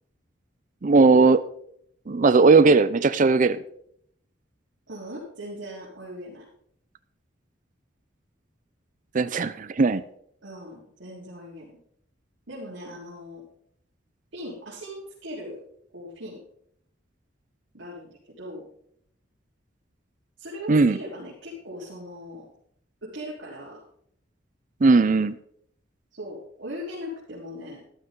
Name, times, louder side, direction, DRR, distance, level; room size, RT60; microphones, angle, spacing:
voice 1, 0.8-1.4 2.1-3.6 9.1-10.0 20.7-21.0 24.8-25.4, right 4 dB, 40° right, 13 dB, 0.5 m, -18 dB
voice 2, 4.9-6.5 10.4-11.8 12.5-13.4 14.3-15.6 15.9-16.4 17.7-18.7 20.4-22.5 23.0-23.8 26.1-27.8, equal, 80° right, -6 dB, 3.6 m, -39 dB
13.0 x 12.0 x 3.8 m, 0.69 s
head